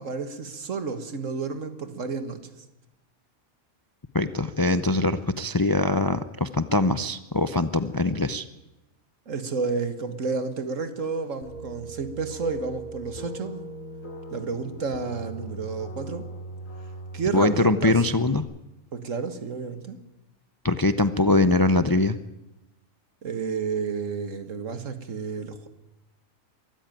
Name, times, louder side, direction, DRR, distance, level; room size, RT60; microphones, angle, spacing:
voice 1, 0.0-2.4 9.3-13.6 14.3-16.3 17.1-18.0 18.9-20.0 23.2-25.7, right 4 dB, 75° right, 10 dB, 1.9 m, -31 dB
voice 2, 4.1-8.5 17.3-18.4 20.6-22.2, left 2 dB, 25° left, 12 dB, 0.5 m, -22 dB
sound 1, 11.4-18.4, right 2 dB, 85° left, 2.8 m, -39 dB
22.5 x 13.5 x 9.1 m, 0.98 s
omnidirectional pair, 1.4 m